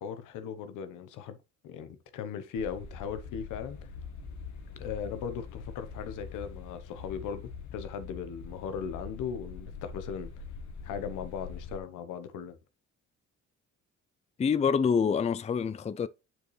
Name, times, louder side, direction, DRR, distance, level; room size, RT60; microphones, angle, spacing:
voice 1, 0.0-1.4 1.6-3.9 4.8-7.4 7.7-10.3 10.8-12.6, left 7 dB, 90° left, 1.0 m, -38 dB
sound 1, 2.6-11.8, left 5 dB, 70° left, 1.3 m, -43 dB
voice 2, 14.4-16.1, left 6 dB, 20° left, 0.4 m, -26 dB
8.0 x 4.5 x 3.1 m
cardioid pair, 90°, 30 cm